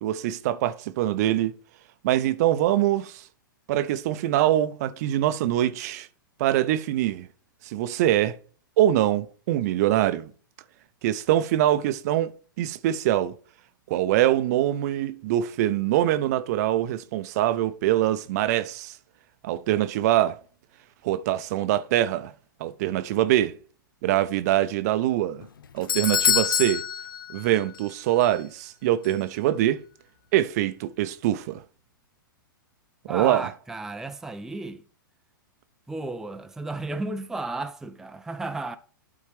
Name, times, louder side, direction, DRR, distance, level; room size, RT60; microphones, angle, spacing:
voice 1, 0.0-1.5 2.0-3.2 3.7-6.1 6.4-7.3 7.6-8.4 8.8-10.3 11.0-12.3 12.6-13.3 13.9-18.9 19.4-20.4 21.0-22.3 22.6-23.6 24.0-25.4 25.7-26.8 27.3-29.8 30.3-31.6 33.1-33.5, right 13 dB, 50° right, 0.6 m, -24 dB
Doorbell, 25.4-27.9 28.2-28.3 29.0-29.1, left 9 dB, 75° left, 0.5 m, -26 dB
voice 2, 33.1-34.8 35.9-38.8, right 2 dB, 5° right, 0.5 m, -33 dB
12.0 x 4.3 x 3.4 m
figure-of-eight pair, 105°, 11 cm